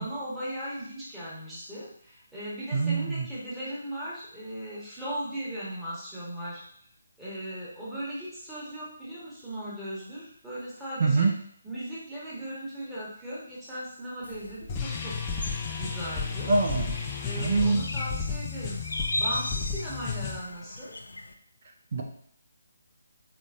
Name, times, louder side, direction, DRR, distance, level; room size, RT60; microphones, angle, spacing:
voice 1, 0.0-6.6 7.2-11.3 11.6-15.1 15.8-16.5 17.2-18.8 19.2-20.9, right 1 dB, 5° right, -10 dB, 1.4 m, -37 dB
voice 2, 2.7-3.3 11.0-11.3 16.5-16.9 17.4-17.9 21.9-22.0, right 3 dB, 45° right, 2 dB, 0.7 m, -24 dB
sound 1, 14.2-21.3, left 1 dB, 70° left, 0.5 m, -38 dB
sound 2, 14.7-20.4, left 5 dB, 20° left, 0.5 m, -33 dB
5.1 x 4.0 x 2.6 m, 0.64 s
figure-of-eight pair, 150°, 0 cm